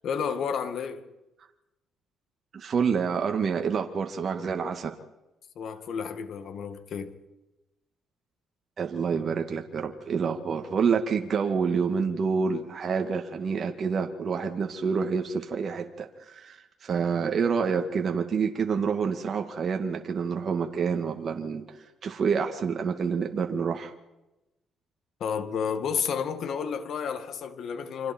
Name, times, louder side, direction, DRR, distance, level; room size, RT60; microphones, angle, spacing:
voice 1, 0.0-1.1 5.6-7.1 25.2-28.1, left 6 dB, 65° left, 2.0 m, -31 dB
voice 2, 2.5-4.9 8.8-23.9, right 6 dB, 50° right, 1.9 m, -28 dB
29.0 x 26.0 x 4.5 m
cardioid pair, 90°, 0 cm